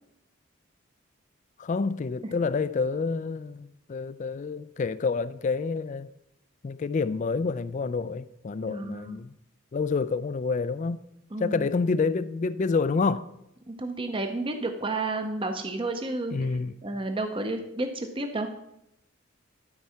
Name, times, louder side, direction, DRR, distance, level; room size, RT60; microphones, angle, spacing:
voice 1, 1.6-6.1 6.6-9.3 9.7-11.0 11.4-13.3 16.3-16.7, left 4 dB, 35° left, 0.3 m, -28 dB
voice 2, 8.7-9.2 11.3-11.7 13.7-16.4 16.8-18.5, right 2 dB, 25° right, 0.7 m, -31 dB
12.0 x 4.6 x 5.6 m
head